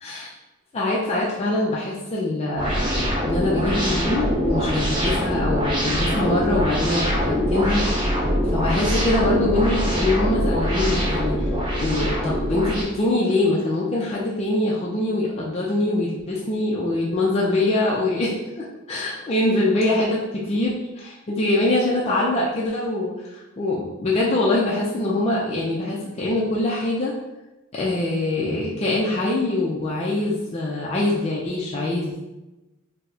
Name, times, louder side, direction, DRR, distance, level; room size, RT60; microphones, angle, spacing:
voice 1, 0.7-2.8 3.2-7.8 8.5-11.5 11.8-27.1 27.7-32.2, left 2 dB, 30° left, -5 dB, 0.3 m, -23 dB
sound 1, 2.6-12.8, equal, 20° right, 0.7 m, -23 dB
4.4 x 2.0 x 2.6 m, 1.0 s
head